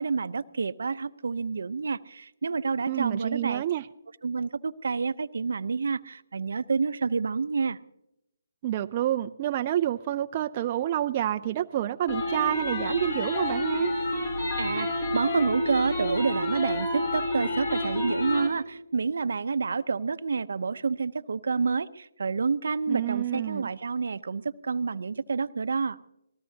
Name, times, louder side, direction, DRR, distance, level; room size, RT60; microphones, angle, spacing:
voice 1, 0.0-3.6 4.2-7.8 14.6-26.0, right 4 dB, 70° right, 13 dB, 0.7 m, -28 dB
voice 2, 2.9-3.9 8.6-13.9 22.9-23.7, right 12 dB, 35° right, 6 dB, 0.5 m, -28 dB
sound 1, 12.1-18.5, left 1 dB, 50° left, 5.3 m, -29 dB
26.5 x 19.5 x 2.8 m, 0.84 s
hypercardioid pair, 150°, 0 cm